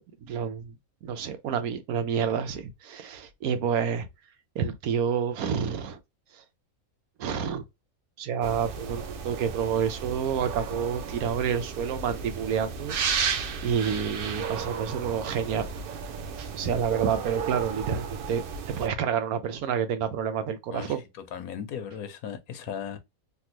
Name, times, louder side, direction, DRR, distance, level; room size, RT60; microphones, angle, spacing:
voice 1, 0.0-4.1 4.5-6.0 6.3-6.4 7.2-7.6 8.2-15.7 16.4-18.4 18.7-21.0, right 7 dB, 85° right, 1.2 m, -29 dB
sound 1, 8.4-18.9, right 6 dB, 60° right, 0.6 m, -34 dB
voice 2, 21.3-23.0, left 8 dB, 80° left, 1.2 m, -36 dB
3.4 x 2.4 x 2.9 m
omnidirectional pair, 1.5 m